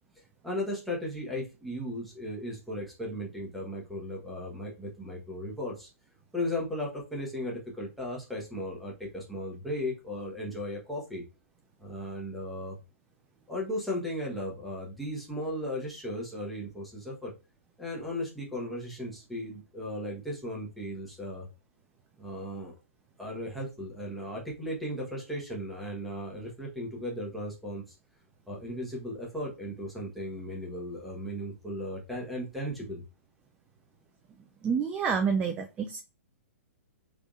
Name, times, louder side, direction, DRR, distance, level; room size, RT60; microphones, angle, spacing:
voice 1, 0.4-5.9 6.3-11.2 11.8-12.8 13.5-17.3 17.8-21.5 22.2-22.7 23.2-27.9 28.5-33.0, left 1 dB, ahead, -4 dB, 1.2 m, -36 dB
voice 2, 34.6-36.0, right 6 dB, 15° right, 4 dB, 0.4 m, -28 dB
3.6 x 3.3 x 2.5 m, 0.29 s
figure-of-eight pair, 115°, 8 cm